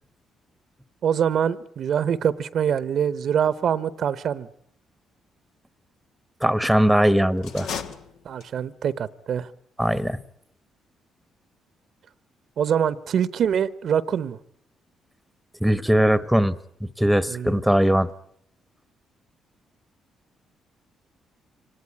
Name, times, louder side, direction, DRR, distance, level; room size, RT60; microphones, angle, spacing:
voice 1, 1.0-4.5 8.2-9.5 12.6-14.4 17.3-17.6, right 8 dB, 65° right, 0.9 m, -24 dB
voice 2, 6.4-7.7 9.8-10.2 15.6-16.5 17.0-18.1, equal, ahead, 1.0 m, -20 dB
sound 1, 7.4-8.8, left 7 dB, 85° left, 1.4 m, -35 dB
24.5 x 18.5 x 9.7 m
cardioid pair, 90°, 0 cm